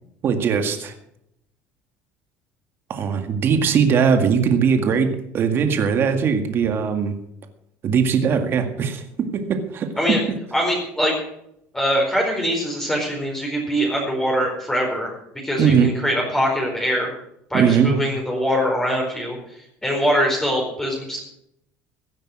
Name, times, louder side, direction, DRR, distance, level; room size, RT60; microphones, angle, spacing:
voice 1, 0.2-0.9 2.9-7.2 7.8-10.2 15.6-15.9 17.5-18.0, right 6 dB, 40° right, 6 dB, 1.9 m, -20 dB
voice 2, 10.5-11.2 11.7-15.1 15.4-17.1 17.5-19.4 19.8-21.2, equal, 10° left, -1 dB, 4.4 m, -22 dB
16.0 x 9.0 x 6.3 m, 0.76 s
cardioid pair, 125°, 6 cm